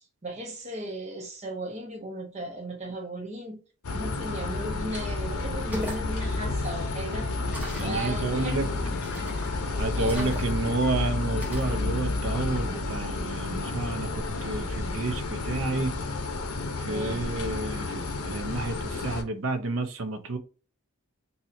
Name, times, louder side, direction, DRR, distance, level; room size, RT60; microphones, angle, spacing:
voice 1, 0.2-3.6 3.9-7.3 7.8-8.6 9.9-10.4 16.9-17.3, right 1 dB, 30° right, 0.9 m, -36 dB
sound 1, 3.8-19.2, left 3 dB, 80° left, 0.7 m, -31 dB
sound 2, 5.5-6.1 7.5-8.0 9.0-9.5 10.0-10.7 11.4-11.8, equal, 5° right, 1.2 m, -38 dB
sound 3, 6.4-12.8, left 3 dB, 45° left, 0.5 m, -39 dB
voice 2, 7.8-8.7 9.8-15.9 16.9-20.4, right 2 dB, 65° right, 0.6 m, -30 dB
4.1 x 2.7 x 2.6 m
head